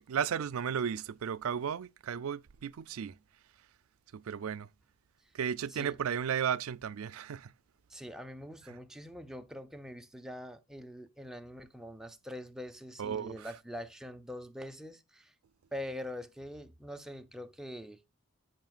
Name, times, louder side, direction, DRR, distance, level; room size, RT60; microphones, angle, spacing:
voice 1, 0.0-3.2 4.1-4.7 5.3-7.5 8.7-8.8 13.0-13.5, right 8 dB, 85° right, 0.4 m, -34 dB
voice 2, 7.9-15.3 15.7-18.0, left 1 dB, ahead, 0.6 m, -44 dB
10.5 x 7.8 x 2.4 m
head